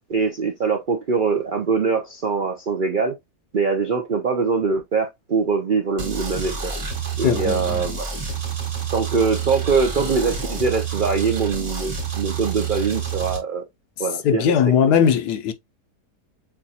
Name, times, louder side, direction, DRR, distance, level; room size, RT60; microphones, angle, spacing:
voice 1, 0.1-3.2 3.5-6.7 7.2-8.1 8.9-13.6 14.0-14.6, right 5 dB, 80° right, 0.4 m, -23 dB
sound 1, 6.0-13.4, right 6 dB, 60° right, 2.4 m, -28 dB
voice 2, 7.2-7.9 14.2-15.5, left 8 dB, 80° left, 1.2 m, -19 dB
7.1 x 2.4 x 2.8 m
omnidirectional pair, 1.8 m